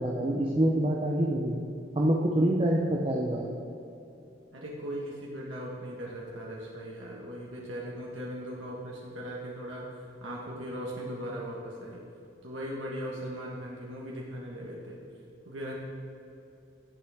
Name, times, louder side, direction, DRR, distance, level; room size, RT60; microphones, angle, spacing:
voice 1, 0.0-1.6 2.0-3.5, right 1 dB, 30° right, -1 dB, 0.7 m, -26 dB
voice 2, 4.5-12.0 12.4-15.0 15.4-15.7, equal, 90° right, -3 dB, 1.5 m, -39 dB
16.5 x 6.1 x 3.5 m, 2.8 s
head